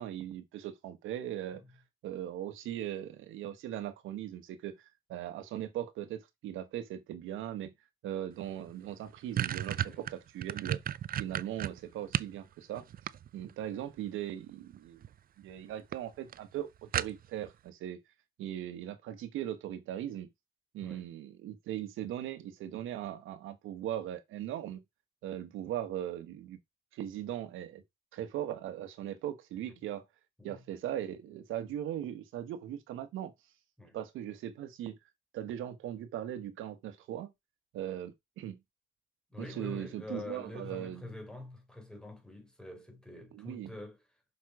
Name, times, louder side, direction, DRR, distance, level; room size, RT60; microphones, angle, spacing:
voice 1, 0.0-1.6 2.0-7.7 8.0-10.8 11.2-12.8 13.3-15.0 15.4-18.0 18.4-20.3 20.7-24.8 25.2-26.6 26.9-27.8 28.1-30.0 30.4-33.3 33.9-35.0 35.3-37.3 37.7-38.6 39.4-41.0 43.3-43.7, right 11 dB, 90° right, 1.3 m, -39 dB
sound 1, 8.5-8.6 8.9-12.4 12.8-13.6 14.7-15.1 15.5-15.6 15.9-16.0 16.3-16.4 16.9-17.5, right 10 dB, 45° right, 0.5 m, -33 dB
voice 2, 39.3-44.0, left 2 dB, 5° left, 3.5 m, -45 dB
6.4 x 5.5 x 4.8 m
cardioid pair, 90°, 20 cm